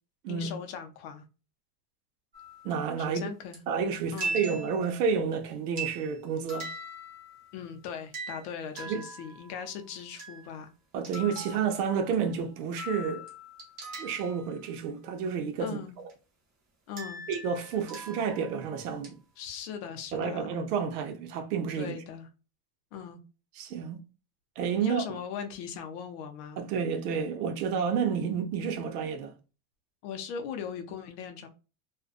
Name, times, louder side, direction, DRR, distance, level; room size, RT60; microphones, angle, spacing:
voice 1, 0.3-1.3 3.1-3.6 4.1-4.4 7.5-10.7 15.6-16.0 16.9-17.2 19.4-20.5 21.7-22.3 22.9-23.2 24.8-26.6 30.0-31.5, left 7 dB, 45° left, 0.5 m, -39 dB
sound 1, 2.3-2.9 3.5-3.6 4.2-5.3 5.8-6.2 6.5-7.6 8.1-9.6 10.0-10.5 11.0-12.4 12.8-14.5 16.1-16.2 17.0-18.7 19.0-19.1, right 2 dB, 20° right, 0.4 m, -40 dB
voice 2, 2.6-3.3 3.7-6.7 8.9-9.1 10.9-13.3 13.9-15.8 17.3-19.2 20.1-21.9 23.6-24.0 24.6-25.0 26.6-29.3, right 6 dB, 90° right, 0.7 m, -30 dB
2.5 x 2.2 x 2.4 m
supercardioid pair, 160°, 44 cm